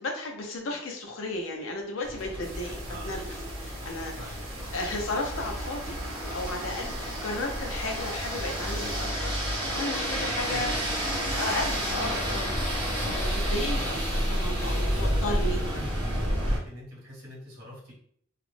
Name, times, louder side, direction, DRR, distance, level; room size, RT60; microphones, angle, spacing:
voice 1, 0.0-3.2 3.6-4.1 4.7-10.8 11.4-12.5 13.1-15.6, left 2 dB, 75° left, 2 dB, 0.6 m, -34 dB
sound 1, 2.0-16.6, equal, 25° right, 0.7 m, -30 dB
sound 2, 2.4-9.1, equal, 80° right, 0.7 m, -41 dB
voice 2, 4.2-4.8 10.2-11.5 15.0-15.9 16.2-17.9, equal, 50° right, -5 dB, 1.0 m, -45 dB
2.4 x 2.0 x 3.1 m, 0.64 s
head